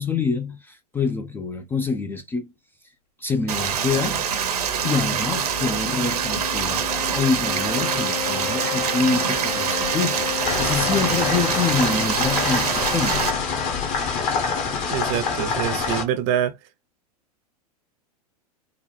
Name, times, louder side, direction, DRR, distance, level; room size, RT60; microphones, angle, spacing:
voice 1, 0.0-2.5 3.2-4.3 4.8-13.3, left 4 dB, 10° left, 0.3 m, -26 dB
Stream, 3.5-13.3, right 7 dB, 70° right, 0.8 m, -25 dB
sound 1, 5.0-14.4, left 14 dB, 65° left, 0.7 m, -33 dB
sound 2, 10.5-16.0, left 5 dB, 40° left, 1.0 m, -26 dB
voice 2, 14.9-16.6, right 10 dB, 40° right, 0.6 m, -25 dB
3.8 x 2.1 x 3.2 m
figure-of-eight pair, 100°, 20 cm